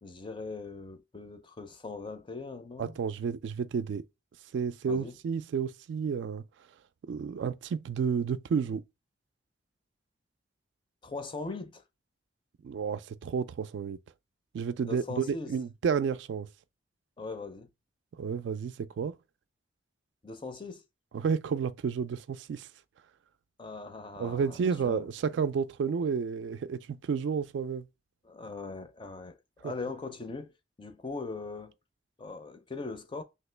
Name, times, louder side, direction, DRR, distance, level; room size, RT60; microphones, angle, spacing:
voice 1, 0.0-3.0 4.9-5.2 11.0-11.8 14.8-15.5 17.2-17.7 20.2-20.8 23.6-24.5 24.8-25.1 28.2-30.5 30.8-31.7 32.2-33.2, left 3 dB, 25° left, 0.4 m, -40 dB
voice 2, 2.8-4.1 4.5-6.4 7.0-8.8 12.6-14.0 14.5-16.5 18.2-19.2 21.1-22.7 24.2-27.9 29.6-29.7, right 6 dB, 75° right, 0.3 m, -31 dB
2.9 x 2.9 x 3.2 m
head